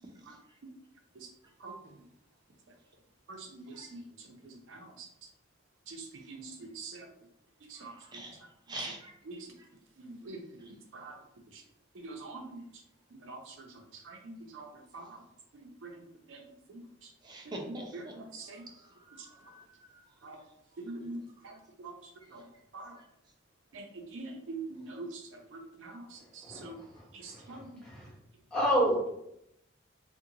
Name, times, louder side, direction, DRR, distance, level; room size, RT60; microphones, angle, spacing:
voice 1, 1.6-2.0 3.3-5.1 5.9-7.1 7.7-8.2 9.3-9.5 10.0-10.4 10.9-11.2 11.5-11.6 11.9-12.6 13.1-15.2 15.5-16.0 16.3-17.1 17.4-18.7 19.2-19.3 20.2-20.4 20.8-23.0 23.7-26.8 27.1-27.7, right 3 dB, 85° right, 3 dB, 0.5 m, -45 dB
voice 2, 7.8-8.4 8.7-9.1 17.2-18.1 18.7-20.0 21.5-21.6, right 1 dB, 20° right, 1 dB, 0.4 m, -44 dB
voice 3, 26.4-28.1 28.5-29.1, equal, 5° left, -6 dB, 0.9 m, -31 dB
2.5 x 2.2 x 2.7 m, 0.77 s
head